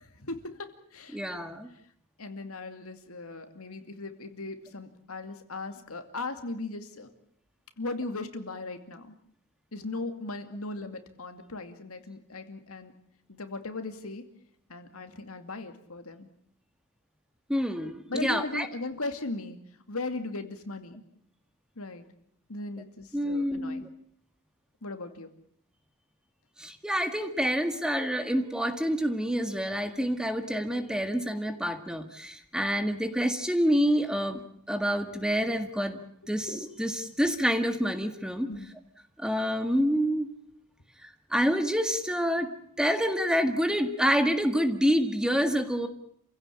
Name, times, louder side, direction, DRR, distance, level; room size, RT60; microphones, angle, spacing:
voice 1, 0.0-1.4 2.2-7.1 7.8-9.1 9.7-12.9 13.3-14.2 14.7-16.3 18.1-19.6 19.9-21.0 21.8-22.1 22.5-23.8 24.8-25.3 36.2-36.3 38.5-38.7, left 2 dB, 75° left, 7 dB, 2.5 m, -38 dB
voice 2, 1.1-1.7 17.5-18.7 23.1-23.9 26.6-34.4 34.7-38.5 39.2-40.3 41.0-42.5 42.8-45.9, equal, 5° right, 7 dB, 1.8 m, -27 dB
28.0 x 16.5 x 8.6 m, 0.67 s
head